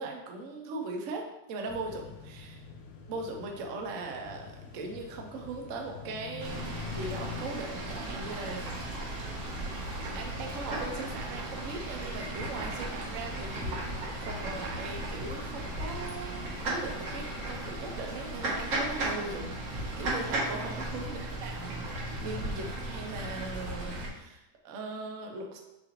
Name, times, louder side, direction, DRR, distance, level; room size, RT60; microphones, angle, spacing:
voice 1, 0.0-2.6 3.1-8.7 9.8-25.6, right 3 dB, 70° right, 2 dB, 0.7 m, -40 dB
sound 1, 1.7-18.6, left 4 dB, 80° left, 1.4 m, -47 dB
Fowl / Bird, 6.4-24.1, right 1 dB, 50° right, 1.2 m, -36 dB
6.7 x 2.4 x 2.9 m, 0.94 s
omnidirectional pair, 2.1 m